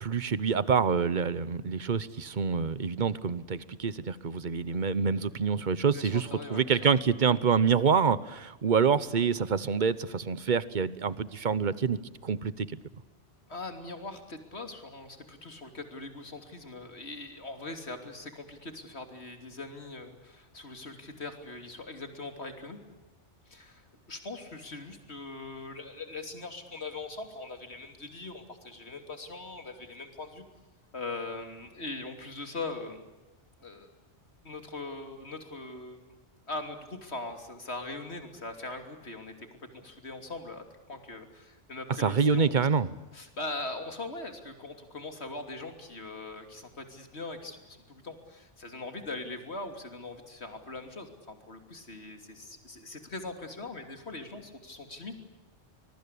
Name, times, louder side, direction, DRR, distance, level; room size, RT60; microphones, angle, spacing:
voice 1, 0.0-12.7 42.0-42.9, right 6 dB, 45° right, 17 dB, 1.1 m, -27 dB
voice 2, 5.9-6.8 13.5-22.8 23.5-30.4 30.9-33.0 33.6-33.9 34.4-36.2 36.5-39.5 39.7-42.6 43.1-55.1, left 3 dB, 65° left, 6 dB, 3.4 m, -41 dB
24.5 x 23.0 x 8.5 m, 1.1 s
omnidirectional pair, 1.2 m